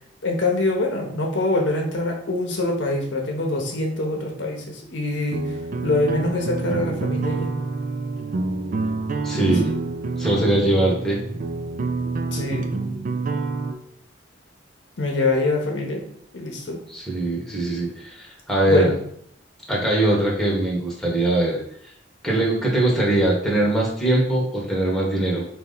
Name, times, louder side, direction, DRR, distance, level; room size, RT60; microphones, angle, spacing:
voice 1, 0.2-7.5 9.3-9.6 12.3-12.7 15.0-16.0 16.3-16.8 18.7-19.0, left 2 dB, 70° left, 1 dB, 0.9 m, -24 dB
sound 1, 5.3-13.7, right 3 dB, 45° right, 0.4 m, -27 dB
voice 2, 9.2-9.7 10.2-11.2 16.9-18.9 19.7-21.6 22.2-25.5, right 2 dB, ahead, -4 dB, 1.0 m, -21 dB
4.1 x 2.7 x 3.8 m, 0.66 s
head